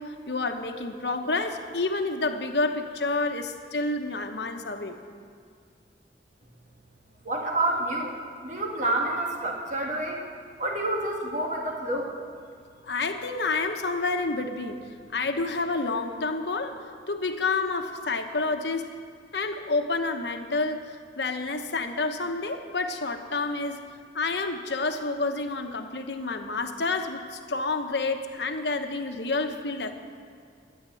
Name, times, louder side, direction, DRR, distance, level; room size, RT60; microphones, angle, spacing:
voice 1, 0.0-5.0 12.9-14.8 15.1-16.8 17.1-18.9 19.3-23.8 24.1-29.9, left 3 dB, 75° left, 6 dB, 1.1 m, -29 dB
voice 2, 7.2-8.2 8.4-10.3 10.6-12.1, right 2 dB, 45° right, 0 dB, 2.0 m, -28 dB
12.5 x 10.5 x 7.7 m, 2.3 s
head